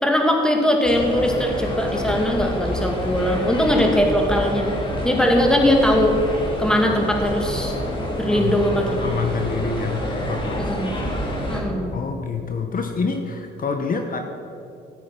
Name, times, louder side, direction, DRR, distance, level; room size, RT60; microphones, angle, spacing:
voice 1, 0.0-4.7 5.0-6.2 6.6-7.8 8.2-9.0 10.6-11.0 11.5-12.0, left 1 dB, 5° left, 1 dB, 2.2 m, -20 dB
sound 1, 0.8-11.6, equal, 25° left, 3.1 m, -28 dB
voice 2, 8.9-10.7 11.1-11.6 11.9-14.2, left 4 dB, 45° left, 5 dB, 1.0 m, -27 dB
14.5 x 8.4 x 5.9 m, 2.7 s
cardioid pair, 90°, 20 cm